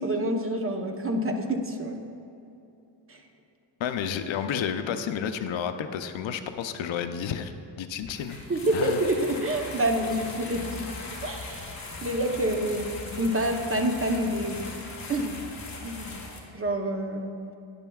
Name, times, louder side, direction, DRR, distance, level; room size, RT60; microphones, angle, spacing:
voice 1, 0.0-2.0 3.1-3.2 8.5-10.8 11.2-14.8 15.1-15.3 15.8-16.1 16.5-17.3, right 1 dB, 25° right, 4 dB, 0.8 m, -27 dB
voice 2, 3.8-7.5 7.8-8.4 8.7-9.0, left 8 dB, 65° left, 8 dB, 0.6 m, -31 dB
sound 1, 8.0-16.4, left 3 dB, 35° left, 2.1 m, -39 dB
10.5 x 10.5 x 2.3 m, 2.8 s
cardioid pair, 110°, 49 cm